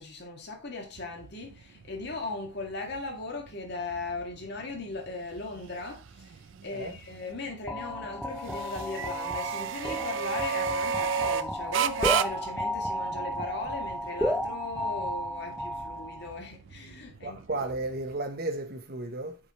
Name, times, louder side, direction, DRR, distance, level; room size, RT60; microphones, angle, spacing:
voice 1, 0.0-17.6, left 3 dB, 60° left, 2.0 m, -38 dB
sound 1, 1.0-18.2, right 8 dB, 85° right, 0.4 m, -35 dB
sound 2, 7.7-16.4, equal, ahead, 0.5 m, -33 dB
voice 2, 17.2-19.4, right 2 dB, 55° right, 0.9 m, -33 dB
8.5 x 4.8 x 3.0 m
head